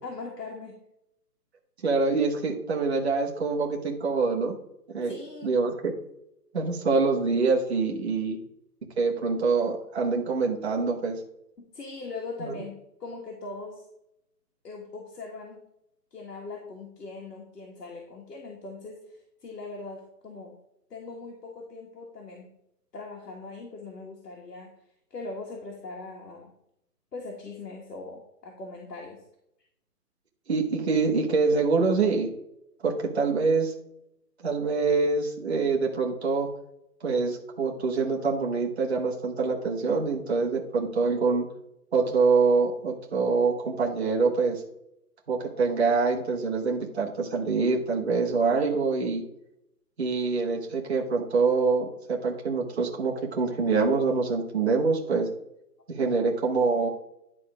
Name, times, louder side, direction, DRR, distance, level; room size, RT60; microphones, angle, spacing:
voice 1, 0.0-0.8 5.0-5.5 11.6-13.9 14.6-15.6 16.1-20.6 20.9-22.6 22.9-24.8 25.1-26.5 27.1-29.2, left 3 dB, 75° left, 0 dB, 1.9 m, -40 dB
voice 2, 1.8-4.6 4.9-5.2 5.4-5.9 6.5-8.4 9.0-11.2 12.4-12.6 30.5-32.3 32.8-33.7 34.4-36.5 37.0-41.5 41.9-44.6 45.3-49.2 50.0-55.3 55.9-56.9, right 4 dB, 40° right, 0 dB, 1.3 m, -25 dB
10.5 x 3.8 x 5.0 m, 0.79 s
hypercardioid pair, 180°, 48 cm